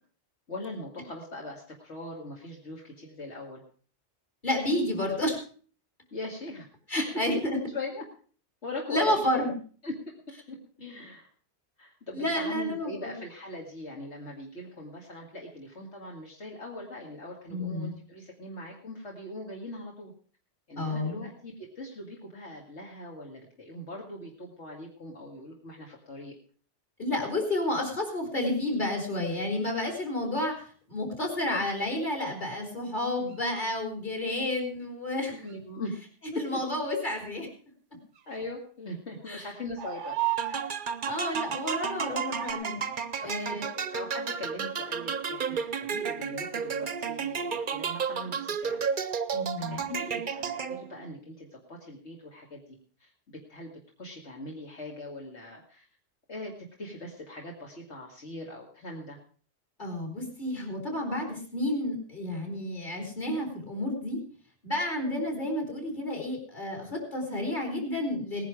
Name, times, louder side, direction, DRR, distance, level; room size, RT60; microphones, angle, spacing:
voice 1, 0.5-3.6 6.1-6.7 7.0-7.1 7.5-8.0 8.6-9.2 9.8-9.9 10.5-11.3 11.8-20.1 20.7-26.3 35.3-35.9 36.3-36.6 38.3-40.2 40.4-40.7 43.2-43.4 43.7-48.8 49.7-55.9 56.3-59.2, left 2 dB, 70° left, -1 dB, 2.5 m, -40 dB
voice 2, 4.4-5.4 6.9-7.4 8.9-9.5 12.1-13.1 17.5-18.0 20.8-21.2 27.0-35.3 36.4-37.5 39.3-39.4 41.1-42.8 43.2-43.6 49.3-49.9 59.8-64.2 64.6-68.5, left 1 dB, 40° left, 2 dB, 4.0 m, -30 dB
sound 1, 30.0-30.1 33.3-33.4 35.5-35.6 38.1-38.4 39.8-40.8 41.8-42.0 42.4-42.5, right 14 dB, 85° right, 1.2 m, -33 dB
sound 2, 40.4-51.0, right 6 dB, 50° right, 0.9 m, -32 dB
18.5 x 10.5 x 4.9 m, 0.42 s
omnidirectional pair, 1.2 m